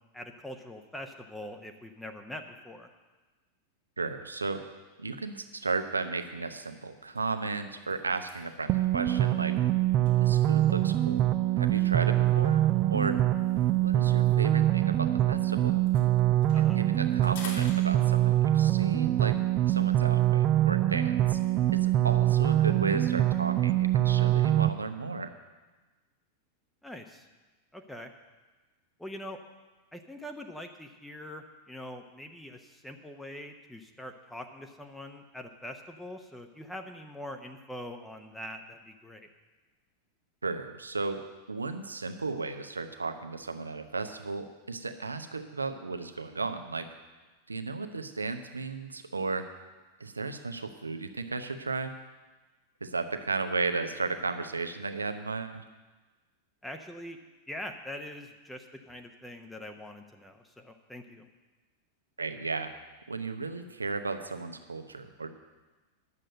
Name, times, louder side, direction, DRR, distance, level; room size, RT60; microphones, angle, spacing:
voice 1, 0.1-2.9 16.5-16.8 26.8-27.2 27.7-28.1 29.0-29.4 29.9-39.3 56.6-57.2 57.5-61.3, left 1 dB, 5° left, 4 dB, 0.9 m, -43 dB
voice 2, 4.0-4.6 5.0-9.6 10.2-12.6 12.9-13.2 13.8-15.8 16.6-19.4 19.7-21.4 21.7-25.3 40.4-41.2 41.5-46.9 47.5-49.5 50.0-51.9 52.8-55.6 62.2-62.7 63.1-65.3, right 3 dB, 80° right, 8 dB, 0.8 m, -34 dB
sound 1, 5.9-6.1 6.5-6.7 7.0-11.0 11.8-15.4 15.7-18.5, left 4 dB, 55° left, 2.8 m, -51 dB
sound 2, 8.7-24.7, right 13 dB, 35° right, 0.4 m, -24 dB
11.0 x 7.6 x 7.8 m, 1.2 s
figure-of-eight pair, 90°, 0 cm